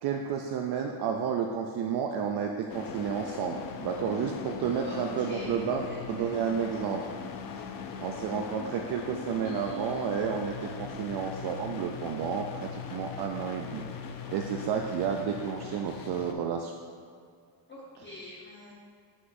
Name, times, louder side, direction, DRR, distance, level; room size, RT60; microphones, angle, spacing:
voice 1, 0.0-5.8 6.1-7.0 8.0-13.8 14.3-16.7, right 7 dB, 65° right, 2 dB, 0.5 m, -31 dB
sound 1, 2.7-16.3, left 6 dB, 55° left, 0.5 m, -40 dB
voice 2, 4.8-6.4 17.7-18.7, left 1 dB, 25° left, -5 dB, 0.9 m, -45 dB
7.8 x 6.0 x 2.6 m, 2.1 s
cardioid pair, 160°, 43 cm